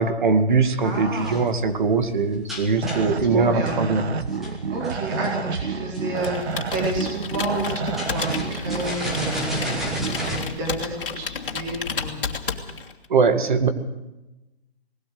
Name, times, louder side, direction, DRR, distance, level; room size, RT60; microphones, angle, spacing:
voice 1, 0.0-4.0 13.1-13.7, right 4 dB, 50° right, 9 dB, 2.1 m, -21 dB
sound 1, 0.7-10.5, left 2 dB, ahead, 0.9 m, -36 dB
voice 2, 0.8-1.4 3.1-3.8 4.7-9.6 10.2-12.3, right 1 dB, 20° right, -1 dB, 4.3 m, -30 dB
sound 2, 2.8-10.4, right 5 dB, 80° right, 1.8 m, -29 dB
Computer keyboard, 6.2-13.0, left 5 dB, 55° left, 2.6 m, -32 dB
19.5 x 17.5 x 7.8 m, 1.0 s
hypercardioid pair, 170°, 32 cm